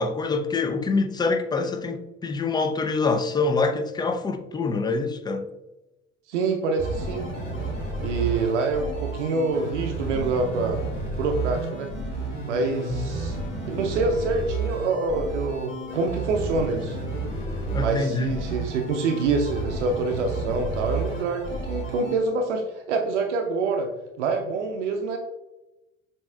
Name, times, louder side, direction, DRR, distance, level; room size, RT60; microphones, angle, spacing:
voice 1, 0.0-5.5 12.9-13.1 17.7-18.3, left 3 dB, 10° left, 0.4 m, -25 dB
voice 2, 6.3-7.3 8.0-10.9 11.2-11.9 12.5-13.4 13.7-17.0 17.8-23.9 24.2-25.2, right 3 dB, 75° right, 0.6 m, -26 dB
sound 1, 6.8-22.2, right 3 dB, 80° left, 1.5 m, -31 dB
7.0 x 2.9 x 2.3 m
figure-of-eight pair, 60°, 37 cm